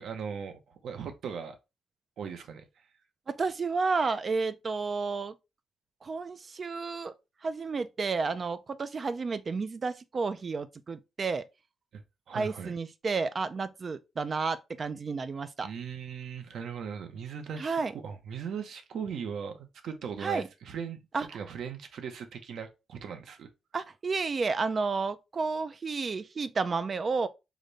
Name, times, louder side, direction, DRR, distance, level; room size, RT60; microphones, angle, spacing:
voice 1, 0.0-1.6 2.2-2.8 11.9-12.0 12.3-12.7 15.6-23.5, right 7 dB, 65° right, 0.7 m, -39 dB
voice 2, 3.3-5.3 6.0-7.1 7.4-11.4 12.3-15.7 17.6-17.9 20.2-20.5 21.1-21.3 23.7-27.3, right 4 dB, 30° right, 0.3 m, -31 dB
5.0 x 2.2 x 3.9 m
wide cardioid pair, 175°, 0 cm